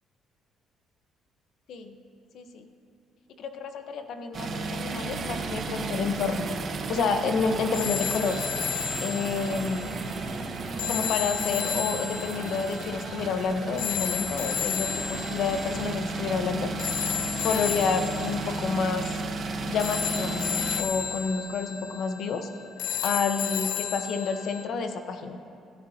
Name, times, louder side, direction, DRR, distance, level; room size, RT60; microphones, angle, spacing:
voice 1, 2.3-2.7 3.4-6.4 6.9-8.4 9.0-9.9 10.9-16.7 17.4-19.2 19.7-22.5 23.0-25.4, left 5 dB, 65° left, 6 dB, 1.1 m, -29 dB
sound 1, 4.3-20.8, right 3 dB, 45° right, 1.2 m, -34 dB
sound 2, 7.7-24.6, left 9 dB, 85° left, 0.8 m, -33 dB
26.5 x 13.0 x 2.9 m, 2.6 s
cardioid pair, 130°, 0 cm